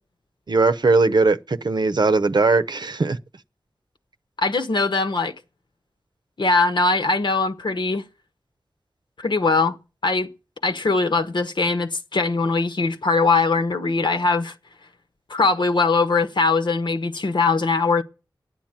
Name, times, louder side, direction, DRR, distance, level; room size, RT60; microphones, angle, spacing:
voice 1, 0.5-3.2, right 3 dB, 60° right, 0.8 m, -19 dB
voice 2, 4.4-5.3 6.4-8.0 9.2-9.7 10.0-10.3 10.6-14.5 15.3-18.0, left 3 dB, 70° left, 1.3 m, -21 dB
11.5 x 9.0 x 8.8 m
cardioid pair, 45°, 8 cm